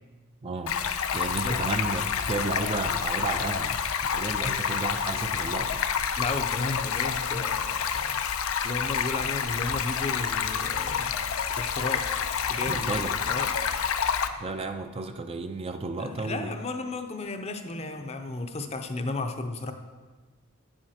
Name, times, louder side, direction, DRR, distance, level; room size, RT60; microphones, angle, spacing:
voice 1, 0.4-0.8 1.1-3.7 4.1-5.8 12.7-13.1 14.4-16.5, right 3 dB, 25° right, 7 dB, 0.4 m, -32 dB
Stream, 0.7-14.3, left 7 dB, 85° left, 0.5 m, -28 dB
voice 2, 6.2-8.2 8.6-12.2 12.5-13.7 16.0-19.7, left 2 dB, 30° left, 6 dB, 0.6 m, -34 dB
9.6 x 7.7 x 4.3 m, 1.3 s
head